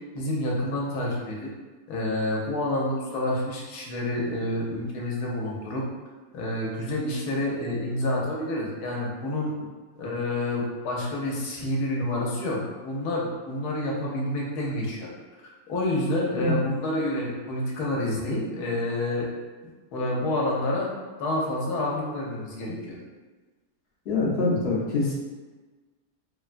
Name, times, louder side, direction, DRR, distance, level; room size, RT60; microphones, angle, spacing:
voice 1, 0.1-1.5 1.9-5.8 6.3-9.5 10.0-15.1 15.4-19.3 19.6-20.9 21.2-23.0, left 1 dB, 75° left, -3 dB, 1.2 m, -28 dB
voice 2, 24.1-25.1, left 3 dB, 55° left, -6 dB, 0.7 m, -24 dB
3.4 x 2.2 x 2.4 m, 1.3 s
omnidirectional pair, 1.8 m